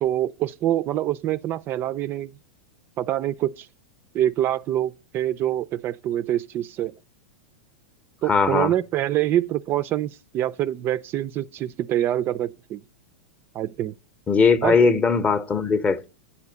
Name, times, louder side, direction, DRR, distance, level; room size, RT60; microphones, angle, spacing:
voice 1, 0.0-2.3 3.0-3.7 4.1-6.9 8.2-12.8 13.5-13.9 14.6-14.8, right 12 dB, 35° right, 0.3 m, -25 dB
voice 2, 8.3-8.7 14.3-16.1, left 4 dB, 20° left, 0.7 m, -19 dB
8.7 x 4.3 x 6.7 m
hypercardioid pair, 100°, 6 cm